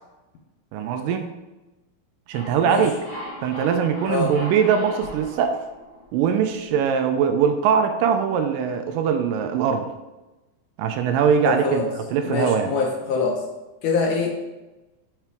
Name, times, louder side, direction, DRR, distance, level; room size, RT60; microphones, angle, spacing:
voice 1, 0.7-1.3 2.3-2.9 3.4-5.6 6.1-9.9 10.8-11.8 12.1-12.7, right 7 dB, 80° right, 7 dB, 2.1 m, -21 dB
sound 1, 2.3-6.8, equal, 50° left, 1.7 m, -38 dB
voice 2, 4.1-4.4 11.5-11.9 12.2-13.5 13.8-14.3, left 4 dB, 75° left, 2 dB, 2.0 m, -24 dB
6.8 x 5.8 x 3.5 m, 1.1 s
omnidirectional pair, 4.0 m